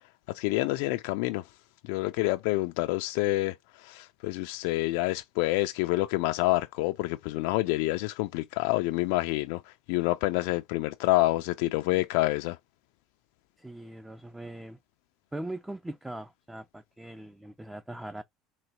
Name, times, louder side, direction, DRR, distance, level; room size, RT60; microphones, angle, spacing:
voice 1, 0.3-1.4 1.8-12.6, left 19 dB, 80° left, 0.4 m, -28 dB
voice 2, 13.6-14.8 15.3-18.2, right 1 dB, 10° right, 0.5 m, -40 dB
3.9 x 2.9 x 4.5 m
supercardioid pair, 105°, 0 cm